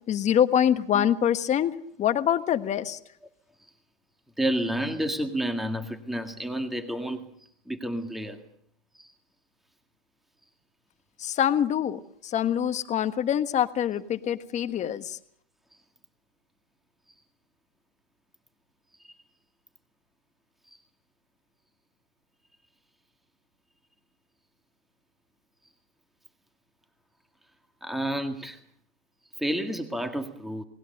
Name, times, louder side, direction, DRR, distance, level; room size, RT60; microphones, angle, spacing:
voice 1, 0.1-3.0 11.2-15.2, left 9 dB, 25° left, 10 dB, 1.5 m, -25 dB
voice 2, 4.4-7.2 7.7-8.4 8.9-9.1 19.0-19.1 27.8-28.6 29.4-30.6, right 1 dB, ahead, 7 dB, 1.9 m, -30 dB
29.0 x 19.5 x 6.6 m, 0.64 s
hypercardioid pair, 125°, 29 cm